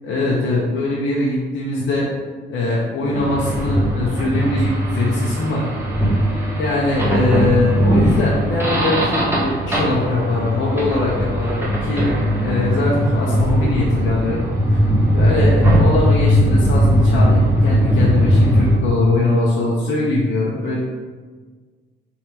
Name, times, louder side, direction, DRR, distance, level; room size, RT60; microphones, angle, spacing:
voice 1, 0.1-2.1 2.5-5.6 6.5-14.8 15.1-20.8, left 2 dB, 70° left, -5 dB, 0.8 m, -21 dB
sound 1, 3.1-18.8, equal, 10° right, 1.0 m, -18 dB
3.5 x 2.9 x 4.7 m, 1.5 s
cardioid pair, 90°, 20 cm